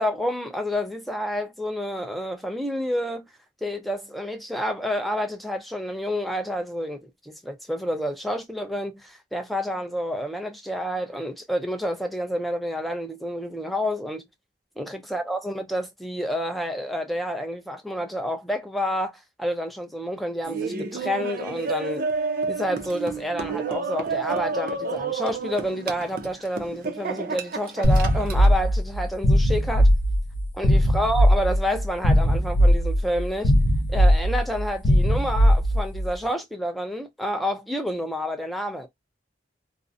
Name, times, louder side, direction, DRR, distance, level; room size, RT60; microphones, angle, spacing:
voice 1, 0.0-3.2 3.6-14.2 14.8-22.0 22.5-29.9 30.6-33.5 33.9-38.9, equal, ahead, 0.4 m, -29 dB
Laughter, 20.4-28.5, right 4 dB, 50° right, 0.5 m, -30 dB
sound 1, 27.8-36.1, equal, 75° left, 0.5 m, -19 dB
2.5 x 2.0 x 2.4 m
head